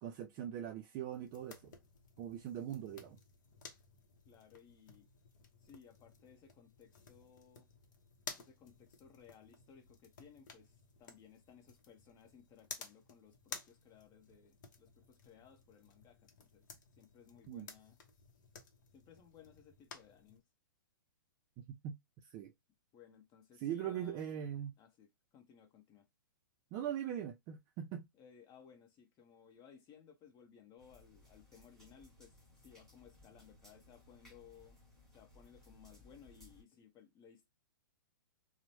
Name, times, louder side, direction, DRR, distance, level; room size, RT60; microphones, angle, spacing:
voice 1, 0.0-1.7 2.2-3.2 17.5-17.7 21.6-21.9 22.2-22.5 23.6-24.7 26.7-28.1, right 10 dB, 30° right, 0.4 m, -41 dB
sound 1, 1.1-20.4, left 5 dB, 60° left, 0.7 m, -55 dB
voice 2, 4.3-5.1 5.6-7.7 8.3-16.7 17.0-18.0 18.9-20.4 22.9-24.5 24.8-26.1 28.1-34.8 35.1-37.5, left 8 dB, 30° left, 0.9 m, -61 dB
sound 2, 30.8-36.6, left 1 dB, ahead, 1.5 m, -62 dB
2.9 x 2.1 x 2.7 m
hypercardioid pair, 120°, 11 cm